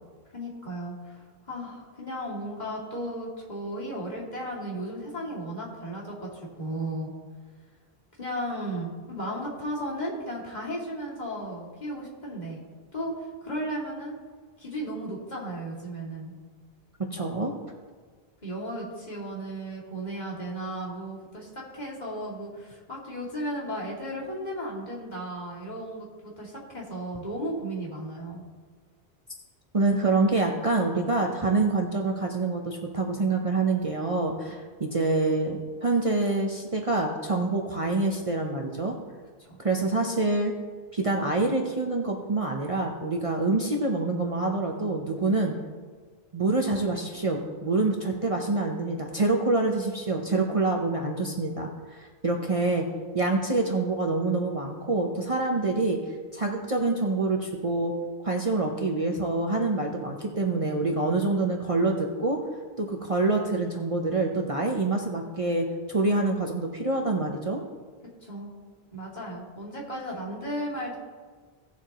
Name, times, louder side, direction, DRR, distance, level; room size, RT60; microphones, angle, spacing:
voice 1, 0.3-7.1 8.2-12.6 12.9-14.2 14.6-16.3 18.4-28.4 34.5-34.6 39.4-39.6 66.0-66.1 68.2-68.5 68.9-71.0, right 1 dB, 45° left, -4 dB, 2.7 m, -35 dB
voice 2, 17.1-17.5 29.7-38.9 39.6-40.5 40.9-45.5 46.3-52.8 53.1-56.0 56.3-62.4 62.8-67.6, right 3 dB, 35° right, 1 dB, 0.9 m, -26 dB
17.5 x 7.2 x 3.0 m, 1.5 s
omnidirectional pair, 1.1 m